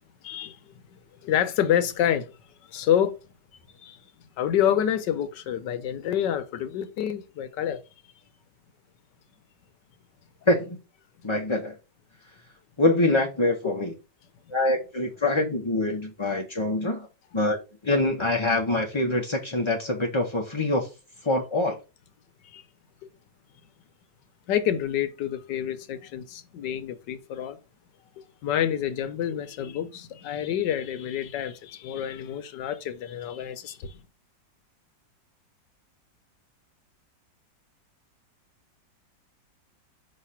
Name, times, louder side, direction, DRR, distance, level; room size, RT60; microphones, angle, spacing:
voice 1, 0.2-0.6 0.9-2.4 2.7-3.2 3.8-4.0 4.4-7.8 13.6-13.7 22.4-22.6 24.5-27.6 28.2-34.0, left 10 dB, 80° left, 1.4 m, -28 dB
voice 2, 10.5-10.8 11.2-11.8 12.8-13.9 14.5-17.1 17.3-17.6 17.8-20.9 21.2-21.8, left 2 dB, 30° left, 0.5 m, -24 dB
5.7 x 3.2 x 5.6 m
omnidirectional pair, 2.0 m